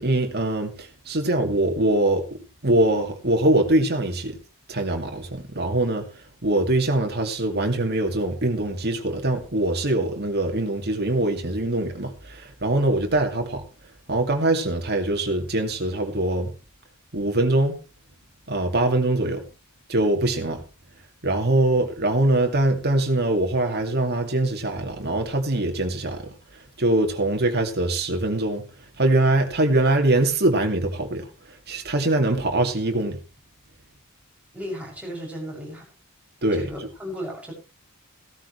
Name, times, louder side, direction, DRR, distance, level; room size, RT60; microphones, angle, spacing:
voice 1, 0.0-2.3 2.6-4.4 4.7-13.7 14.1-16.5 17.1-17.8 18.5-19.4 19.9-20.6 21.2-28.7 29.0-33.2 36.4-36.7, right 2 dB, 50° right, 2.4 m, -23 dB
voice 2, 34.5-35.9 36.5-37.5, equal, 5° right, 7.0 m, -34 dB
16.0 x 13.5 x 3.3 m
head